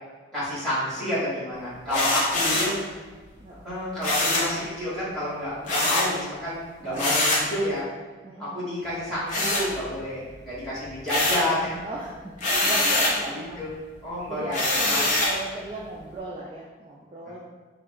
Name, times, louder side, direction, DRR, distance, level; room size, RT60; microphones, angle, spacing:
voice 1, 0.3-2.7 3.5-7.8 8.4-11.8 12.5-12.7 13.6-13.7 14.0-14.6, left 1 dB, 5° left, -11 dB, 1.3 m, -29 dB
voice 2, 1.8-3.0 3.4-3.8 5.7-6.0 6.8-7.2 8.2-8.6 11.8-13.6 14.3-17.4, right 1 dB, 30° right, -4 dB, 0.3 m, -36 dB
sound 1, 1.9-2.8 4.0-4.5 5.7-6.1 7.0-7.5 9.3-10.1 10.5-11.5 12.4-13.2 14.5-15.4, left 2 dB, 40° left, 0.6 m, -24 dB
3.5 x 2.4 x 3.4 m, 1.4 s
head